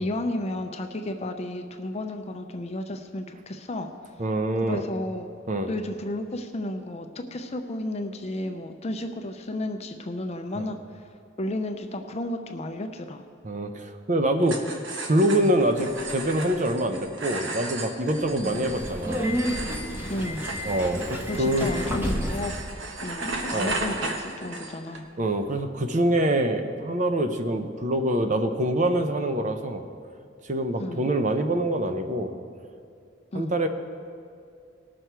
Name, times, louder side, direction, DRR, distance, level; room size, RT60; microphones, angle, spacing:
voice 1, 0.0-3.9 4.6-5.3 5.7-11.1 11.4-13.2 18.4-18.8 20.1-20.5 21.3-22.5 23.0-25.1 30.8-31.1 33.3-33.6, left 1 dB, 35° left, 6 dB, 0.6 m, -32 dB
voice 2, 4.2-4.8 5.5-5.7 10.6-10.7 13.4-14.6 15.1-19.3 20.6-21.7 23.5-23.8 25.2-29.8 30.4-32.3 33.3-33.7, right 1 dB, 40° right, 7 dB, 0.7 m, -25 dB
sound 1, 14.4-25.0, right 2 dB, 75° right, 1.2 m, -35 dB
Subway metro underground, 18.4-22.6, equal, 10° right, 1.0 m, -30 dB
19.0 x 6.4 x 4.6 m, 2.4 s
head